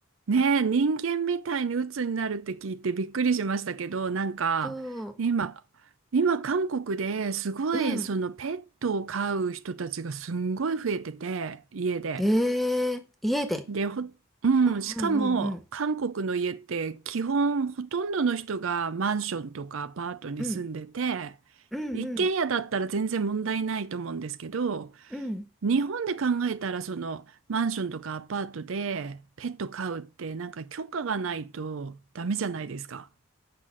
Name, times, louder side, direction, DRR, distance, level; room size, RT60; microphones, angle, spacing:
voice 1, 0.3-4.8 5.2-5.6 6.1-12.2 13.7-14.1 14.4-21.3 21.9-24.9 25.6-27.2 27.5-33.1, right 5 dB, 70° right, 0.5 m, -29 dB
voice 2, 4.6-5.1 7.7-8.1 12.2-13.6 15.0-15.6 20.4-20.7 21.7-22.3 25.1-25.4, equal, ahead, 1.3 m, -29 dB
8.5 x 5.8 x 7.3 m
head